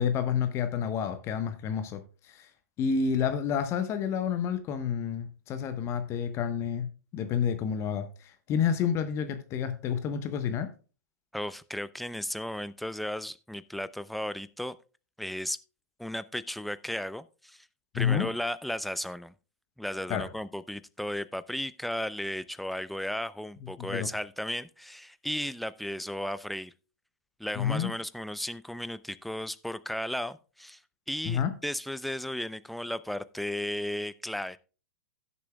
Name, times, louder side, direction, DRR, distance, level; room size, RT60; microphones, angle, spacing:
voice 1, 0.0-2.5 2.8-6.9 7.1-10.7 17.9-18.3 20.1-20.2 23.8-24.1 27.5-27.9 31.2-31.5, left 7 dB, 35° left, 1.0 m, -29 dB
voice 2, 11.3-14.8 15.2-15.6 16.0-17.7 17.9-19.3 19.8-26.7 27.4-30.8 31.1-34.6, left 1 dB, ahead, 0.4 m, -35 dB
16.5 x 7.1 x 2.3 m
figure-of-eight pair, 105°, 9 cm